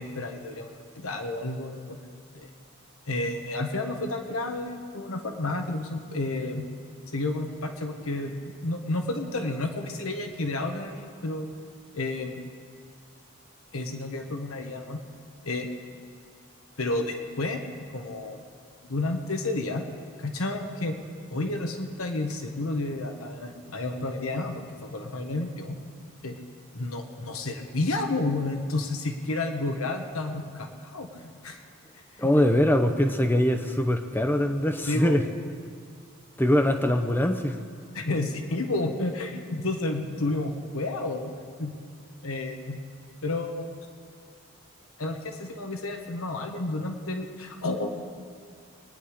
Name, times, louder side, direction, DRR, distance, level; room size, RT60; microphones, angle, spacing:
voice 1, 0.0-2.0 2.3-2.5 3.1-6.6 7.1-8.3 8.6-11.5 11.9-12.3 13.7-15.0 15.4-15.7 16.8-17.6 17.9-18.4 18.9-19.8 20.2-21.0 21.3-25.8 26.2-26.4 26.7-31.6 32.2-32.6 34.9-35.2 36.6-36.9 37.9-41.3 41.6-41.7 42.2-42.8 43.2-43.7 45.0-47.9, left 2 dB, 80° left, 5 dB, 1.3 m, -31 dB
voice 2, 32.2-35.2 36.4-37.6, left 1 dB, 10° left, 6 dB, 0.7 m, -23 dB
22.5 x 10.0 x 5.0 m, 2.2 s
head